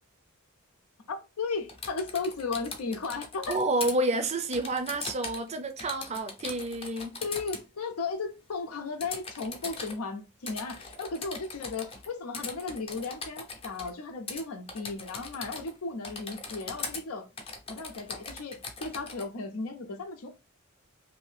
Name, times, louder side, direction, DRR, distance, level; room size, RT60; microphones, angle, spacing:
voice 1, 1.1-3.6 5.8-5.9 7.2-17.3 17.7-20.3, left 4 dB, 80° left, 0.5 m, -35 dB
Typing, 1.7-3.9 4.5-5.5 5.8-7.6 9.0-9.9 10.5-12.1 12.3-13.9 14.3-14.4 14.7-15.8 16.0-17.0 17.4-19.3, left 4 dB, 25° left, 0.6 m, -40 dB
voice 2, 3.5-7.1, right 2 dB, 30° right, 0.5 m, -29 dB
2.7 x 2.6 x 3.3 m
head